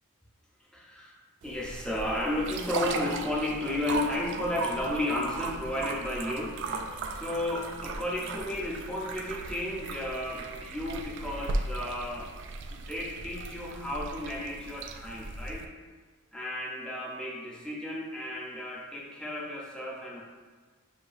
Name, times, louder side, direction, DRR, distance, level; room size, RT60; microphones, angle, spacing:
voice 1, 0.7-12.3 12.7-15.7 16.3-20.2, left 1 dB, 5° left, -3 dB, 0.5 m, -33 dB
sound 1, 1.4-15.7, right 3 dB, 55° right, 0.3 m, -37 dB
6.3 x 2.7 x 2.6 m, 1.4 s
head